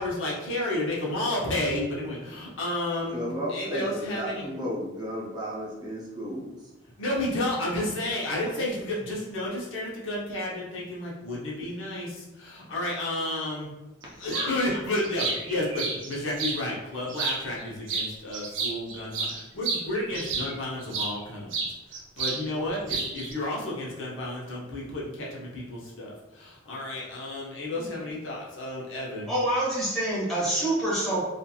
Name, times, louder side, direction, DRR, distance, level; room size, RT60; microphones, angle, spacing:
voice 1, 0.0-3.2 3.5-4.5 7.0-13.7 14.1-21.6 21.9-29.3, left 1 dB, 80° left, -5 dB, 0.8 m, -31 dB
voice 2, 3.1-6.6, equal, 20° right, -5 dB, 0.5 m, -33 dB
sound 1, 14.3-14.5 14.9-16.6 17.1-17.6 17.9-21.1 21.5-22.4 22.7-23.3, right 4 dB, 70° right, 0.5 m, -31 dB
voice 3, 29.3-31.2, right 1 dB, ahead, -10 dB, 1.2 m, -26 dB
2.8 x 2.5 x 2.3 m, 1.0 s
head